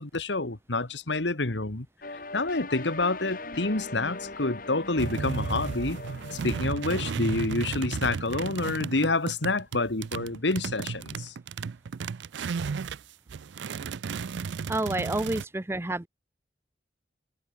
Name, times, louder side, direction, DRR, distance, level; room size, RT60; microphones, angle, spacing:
voice 1, 0.0-6.0 6.3-11.3, left 2 dB, 85° left, 2.0 m, -28 dB
sound 1, 2.0-7.1, left 2 dB, 50° left, 3.1 m, -40 dB
sound 2, 5.0-13.0 13.3-15.4, right 5 dB, 85° right, 0.4 m, -34 dB
voice 2, 14.7-16.1, right 2 dB, 15° right, 0.5 m, -29 dB
head